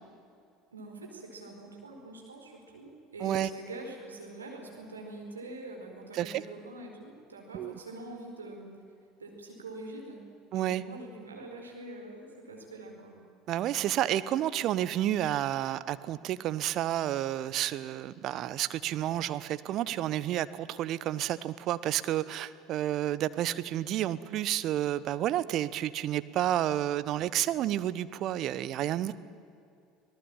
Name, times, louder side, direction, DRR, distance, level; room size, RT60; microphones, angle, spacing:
voice 1, 0.7-8.7 9.2-10.2 10.5-13.2, right 2 dB, 90° right, 1 dB, 4.6 m, -44 dB
voice 2, 10.5-10.8 13.5-29.1, right 12 dB, 50° right, 15 dB, 1.0 m, -30 dB
26.0 x 18.5 x 9.0 m, 2.4 s
hypercardioid pair, 70°, 0 cm